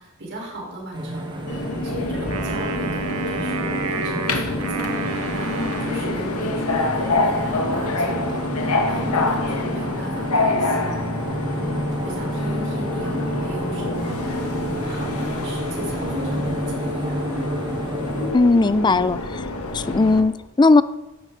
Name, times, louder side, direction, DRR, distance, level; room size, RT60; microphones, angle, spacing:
voice 1, 0.0-17.2, right 1 dB, 55° right, -2 dB, 4.5 m, -37 dB
sound 1, 0.9-18.3, equal, 20° right, 1.5 m, -30 dB
Subway metro underground, 1.5-20.2, left 2 dB, 80° left, 1.4 m, -27 dB
Wind instrument woodwind instrument, 2.3-6.7, right 4 dB, 75° right, 1.2 m, -31 dB
voice 2, 18.3-19.4 19.7-20.8, left 3 dB, 20° left, 16 dB, 0.3 m, -17 dB
14.0 x 10.5 x 3.9 m, 1.0 s
head